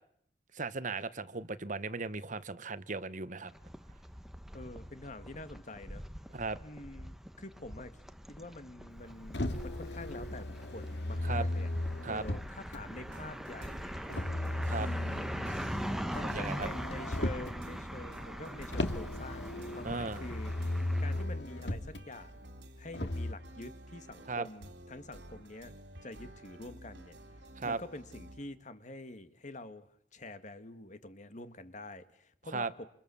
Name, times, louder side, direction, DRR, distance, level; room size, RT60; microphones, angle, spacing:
voice 1, 0.5-3.5 6.3-6.6 11.2-11.4 12.0-12.2 14.7-14.9 16.2-16.7 19.8-20.2 24.3-24.5 27.6-27.8 32.5-32.7, right 3 dB, 45° right, 14 dB, 1.2 m, -36 dB
sound 1, 3.5-21.2, equal, ahead, 1.2 m, -43 dB
voice 2, 4.5-6.0 6.6-8.0 8.3-11.7 12.1-14.0 14.8-15.7 16.1-22.4 22.8-25.7 26.0-27.2 27.6-32.9, left 2 dB, 45° left, 10 dB, 2.0 m, -47 dB
Motor vehicle (road), 9.3-12.8 14.1-17.6 18.7-22.0 22.9-23.3, left 1 dB, 75° left, 2.3 m, -36 dB
sound 2, 12.9-28.4, right 1 dB, 80° right, 3.0 m, -52 dB
28.5 x 28.0 x 7.2 m, 0.70 s
head